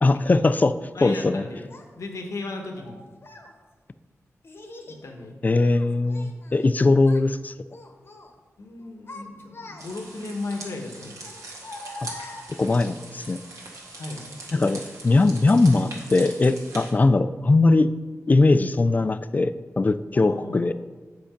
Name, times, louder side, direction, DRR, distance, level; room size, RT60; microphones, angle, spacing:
voice 1, 0.0-0.7 1.0-1.4 5.4-7.5 12.6-13.4 14.5-17.9 18.3-20.7, left 3 dB, 30° left, 13 dB, 0.3 m, -20 dB
voice 2, 0.9-3.0 4.8-5.3 8.6-11.2 13.9-14.2 20.1-20.6, left 2 dB, 75° left, 2 dB, 1.1 m, -36 dB
Child speech kid speaking, 1.7-1.8 2.8-3.5 4.4-5.0 5.5-6.7 7.0-7.3 7.7-8.3 8.8-10.2 11.2-12.9, left 2 dB, 50° left, 1.0 m, -43 dB
sound 1, 9.8-16.9, right 2 dB, 90° right, 1.6 m, -41 dB
8.2 x 5.2 x 5.1 m, 1.3 s
wide cardioid pair, 110°, 5 cm